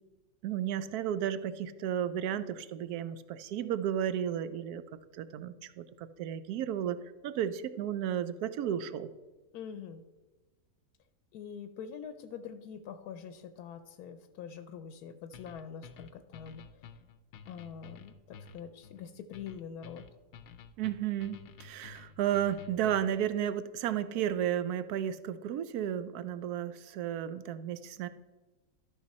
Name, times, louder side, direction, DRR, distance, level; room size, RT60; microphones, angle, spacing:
voice 1, 0.4-4.8 5.1-9.1 20.8-28.1, right 10 dB, 80° right, 13 dB, 1.1 m, -33 dB
voice 2, 9.5-10.0 11.3-16.9 17.5-20.0, left 7 dB, 85° left, 10 dB, 1.1 m, -44 dB
sound 1, 15.3-23.2, left 5 dB, 60° left, 0.8 m, -51 dB
12.5 x 5.8 x 4.2 m, 1.2 s
omnidirectional pair, 1.6 m